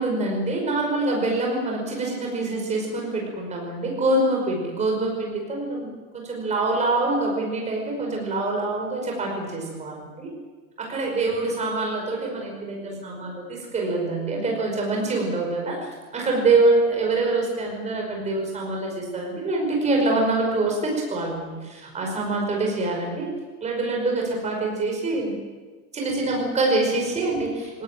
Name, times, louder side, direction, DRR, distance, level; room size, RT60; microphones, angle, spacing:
voice 1, 0.0-10.3 10.8-23.3 23.6-25.3 25.9-27.8, right 2 dB, 15° right, 0 dB, 5.3 m, -25 dB
18.5 x 18.5 x 9.2 m, 1.3 s
supercardioid pair, 180°, 43 cm